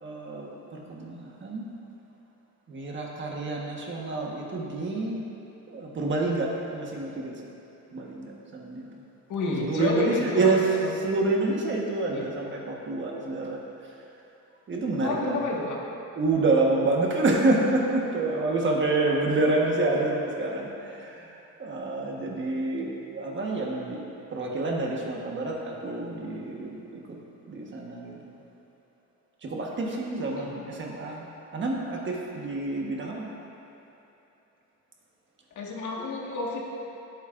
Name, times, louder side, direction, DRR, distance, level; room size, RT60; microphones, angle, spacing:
voice 1, 0.0-1.6 2.7-5.2 5.7-7.3 7.9-9.0 9.6-10.6 10.9-13.6 14.7-15.5 16.2-24.0 24.3-27.2 27.5-28.3 29.4-31.3 31.5-33.3, right 2 dB, 40° right, -2 dB, 1.4 m, -28 dB
voice 2, 9.3-10.9 12.1-12.2 15.0-15.8 30.4-30.6 35.5-36.6, left 3 dB, 75° left, -3 dB, 1.8 m, -30 dB
17.5 x 8.3 x 2.6 m, 2.8 s
cardioid pair, 160°, 30 cm